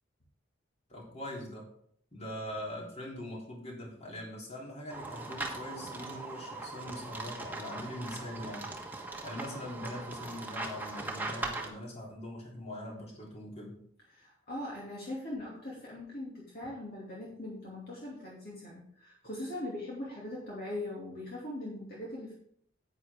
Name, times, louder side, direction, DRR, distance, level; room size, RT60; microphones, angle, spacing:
voice 1, 0.9-1.7 2.1-8.7 9.2-13.8, left 1 dB, 35° left, -2 dB, 3.4 m, -42 dB
sound 1, 4.9-11.7, right 2 dB, 10° right, 1.4 m, -40 dB
voice 2, 14.1-22.3, left 1 dB, 55° left, -4 dB, 2.6 m, -41 dB
10.5 x 9.0 x 3.6 m, 0.67 s
head